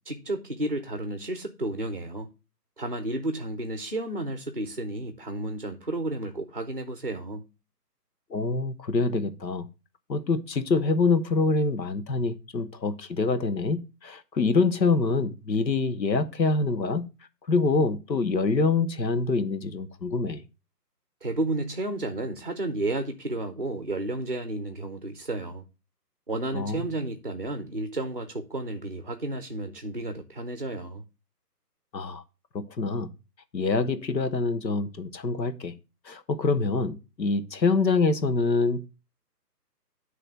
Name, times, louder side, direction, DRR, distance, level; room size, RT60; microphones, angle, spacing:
voice 1, 0.1-2.3 2.8-7.4 21.2-25.7 26.3-31.0, right 2 dB, 35° right, 0.6 m, -32 dB
voice 2, 8.3-9.7 10.1-17.0 17.5-20.4 26.5-26.9 31.9-32.2 32.5-33.1 33.5-35.7 36.0-38.9, left 3 dB, 90° left, 1.3 m, -25 dB
9.2 x 3.2 x 6.5 m
hypercardioid pair, 175°, 49 cm